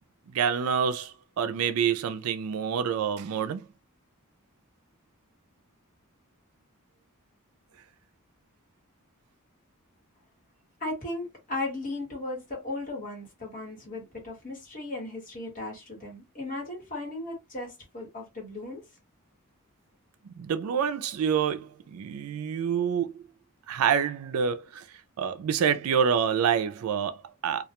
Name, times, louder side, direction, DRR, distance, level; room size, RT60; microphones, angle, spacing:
voice 1, 0.3-3.7 20.2-23.2 23.7-27.6, right 7 dB, 75° right, 0.4 m, -27 dB
voice 2, 10.8-18.8, left 2 dB, 40° left, 1.3 m, -36 dB
2.3 x 2.2 x 2.9 m
head